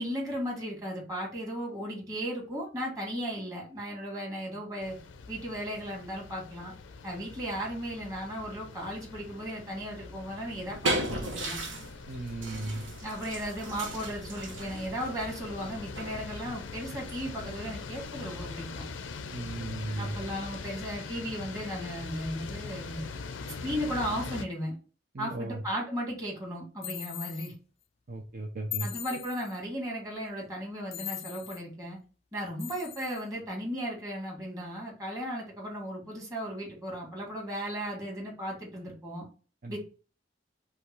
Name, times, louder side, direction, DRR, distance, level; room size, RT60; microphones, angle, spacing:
voice 1, 0.0-5.0 5.3-6.7 7.0-11.6 13.0-18.9 20.0-23.1 23.5-24.8 25.2-27.5 28.8-32.0 32.3-39.3 39.7-39.8, equal, 20° right, -2 dB, 1.9 m, -36 dB
sound 1, 4.8-24.4, left 4 dB, 90° left, 0.5 m, -42 dB
sound 2, 10.4-18.5, right 1 dB, 90° right, 1.0 m, -37 dB
voice 2, 12.1-12.8 19.3-20.2 25.1-25.6 28.1-29.2 39.6-39.8, right 2 dB, 50° right, -1 dB, 0.7 m, -36 dB
sound 3, 26.8-27.5 28.7-29.6 30.9-31.6 32.6-33.2, left 12 dB, 35° left, 0.4 m, -39 dB
5.1 x 2.4 x 4.4 m, 0.36 s
head